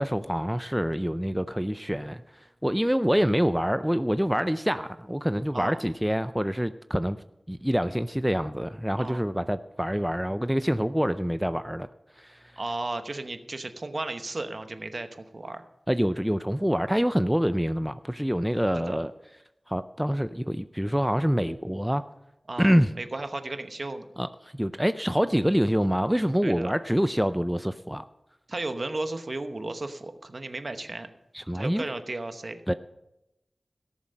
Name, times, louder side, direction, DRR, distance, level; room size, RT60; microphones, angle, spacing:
voice 1, 0.0-2.2 2.6-7.2 7.5-11.9 12.2-12.4 15.9-19.1 19.7-22.0 22.6-22.9 24.2-28.0 31.3-31.8 32.7-32.8, equal, 5° right, 12 dB, 0.4 m, -26 dB
voice 2, 12.6-15.6 18.9-19.0 22.5-24.0 26.4-26.7 28.5-31.1 31.5-32.6, right 2 dB, 55° right, 8 dB, 1.0 m, -34 dB
17.5 x 7.2 x 5.2 m, 0.89 s
wide cardioid pair, 70°, 0 cm